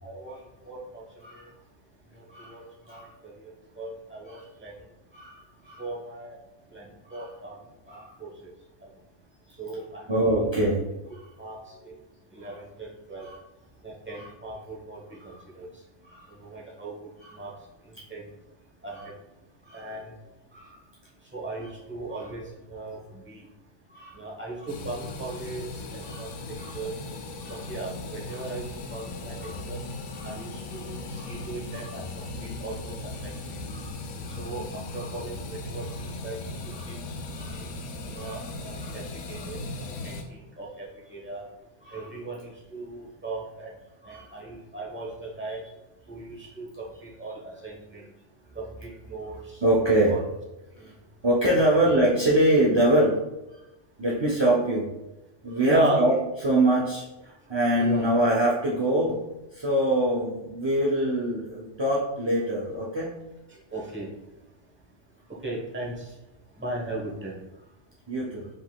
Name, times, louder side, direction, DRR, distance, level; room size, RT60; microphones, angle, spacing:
voice 1, 0.0-1.0 1.3-1.5 2.1-2.6 2.9-3.3 3.8-4.7 5.8-6.4 6.7-6.8 7.1-7.6 7.9-8.5 9.6-10.1 11.4-11.9 12.3-13.3 13.8-15.7 16.3-16.9 17.3-17.5 17.8-18.2 18.8-19.1 19.7-20.1 21.3-23.5 24.1-26.9 27.5-28.6 28.9-29.8 30.2-32.9 33.2-33.6 34.1-37.0 37.5-37.7 38.1-41.5 41.9-43.7 44.0-45.6 46.1-48.0 48.5-49.6 50.1-50.2 50.8-50.9 51.4-51.8 55.6-56.2 57.8-58.0 63.5-64.1 65.4-66.1 66.6-67.3, right 2 dB, 10° right, -3 dB, 0.8 m, -36 dB
voice 2, 5.1-5.8 7.1-7.3 7.9-8.1 10.1-10.9 11.1-11.3 12.4-12.5 13.2-13.4 14.1-14.3 15.3-15.4 16.0-16.3 17.2-17.4 18.9-19.1 19.7-19.9 20.5-20.8 23.9-24.2 26.0-26.8 27.4-27.6 28.3-28.4 29.0-29.1 29.4-29.5 30.1-30.3 31.1-31.5 31.8-32.0 33.7-33.9 34.2-34.4 34.9-35.1 36.7-36.9 37.3-37.6 38.2-38.4 38.8-39.0 39.3-39.5 41.8-42.1 44.0-44.4 45.5-45.6 49.6-50.2 50.8-50.9 51.2-53.2 54.0-54.9 55.4-56.2 56.4-59.2 59.5-63.1 68.1-68.5, right 1 dB, 35° right, -5 dB, 0.4 m, -25 dB
sound 1, 24.7-40.2, left 2 dB, 90° left, 0.9 m, -37 dB
5.1 x 3.8 x 2.3 m, 0.96 s
omnidirectional pair, 1.2 m